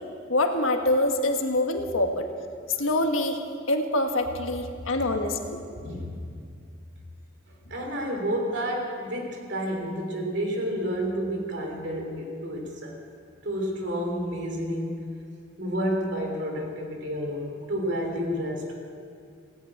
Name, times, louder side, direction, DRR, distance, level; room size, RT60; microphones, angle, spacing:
voice 1, 0.3-2.2 2.8-3.4 3.7-5.6, left 1 dB, 85° left, 5 dB, 1.4 m, -25 dB
voice 2, 5.8-6.2 7.7-12.9 13.4-15.0 15.6-18.7, equal, 60° right, 1 dB, 3.1 m, -30 dB
17.5 x 9.2 x 8.6 m, 2.3 s
head